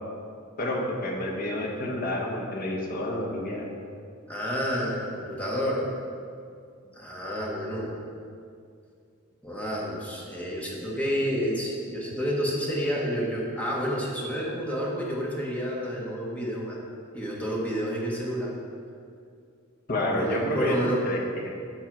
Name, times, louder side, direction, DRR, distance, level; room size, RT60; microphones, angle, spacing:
voice 1, 0.6-3.7 19.9-21.2, left 1 dB, 45° left, -1 dB, 1.1 m, -29 dB
voice 2, 4.3-5.9 6.9-7.9 9.4-16.8 17.1-18.5 20.1-21.2, equal, 5° left, -4 dB, 1.2 m, -29 dB
8.9 x 3.4 x 6.1 m, 2.4 s
head